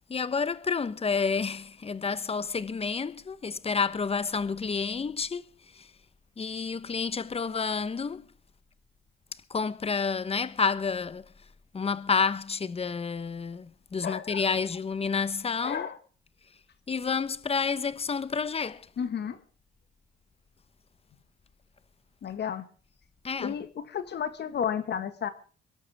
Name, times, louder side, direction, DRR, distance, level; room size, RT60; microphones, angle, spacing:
voice 1, 0.1-5.5 5.7-5.9 6.4-8.2 9.5-11.3 11.7-15.9 16.9-18.9 23.2-23.6, left 5 dB, 30° left, 1.1 m, -29 dB
voice 2, 14.0-14.4 15.6-16.0 19.0-19.4 22.2-22.7 23.4-25.3, left 8 dB, 60° left, 1.7 m, -32 dB
23.0 x 12.5 x 3.6 m
cardioid pair, 90°, 20 cm